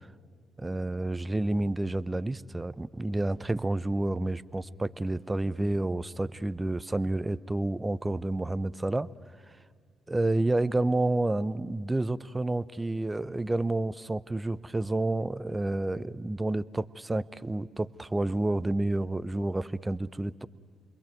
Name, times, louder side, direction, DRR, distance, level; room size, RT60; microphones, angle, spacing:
voice 1, 0.6-9.1 10.1-20.5, right 2 dB, 20° right, 17 dB, 0.8 m, -29 dB
29.0 x 22.0 x 9.3 m, 2.1 s
hypercardioid pair, 45°, 0 cm